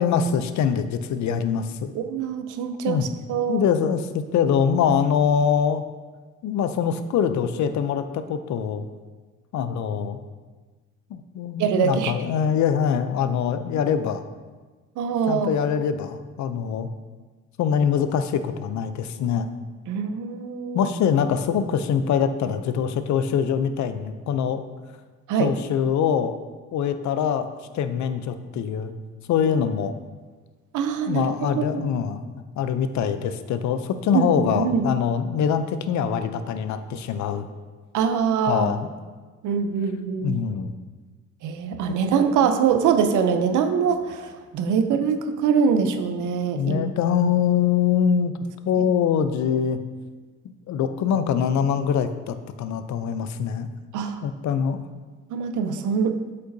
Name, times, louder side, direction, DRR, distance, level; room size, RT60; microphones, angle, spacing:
voice 1, 0.0-1.9 2.9-3.1 3.5-5.8 6.4-8.9 9.5-10.2 11.1-14.2 15.3-16.9 17.6-19.5 20.7-24.6 25.4-26.3 26.7-27.5 27.7-28.9 29.3-30.0 31.1-32.2 32.6-37.5 38.4-38.9 40.2-40.7 41.9-42.0 46.5-48.3 48.7-49.8 50.7-53.7 54.2-54.8, left 7 dB, 70° left, 10 dB, 0.5 m, -23 dB
voice 2, 1.9-3.6 11.6-12.1 15.0-15.5 19.9-20.9 25.3-25.5 30.7-31.8 34.1-34.8 37.9-38.7 39.4-40.4 41.4-46.8 53.9-54.2 55.3-56.1, right 6 dB, 80° right, 8 dB, 0.6 m, -23 dB
8.0 x 5.4 x 2.7 m, 1.4 s
cardioid pair, 90°, 30 cm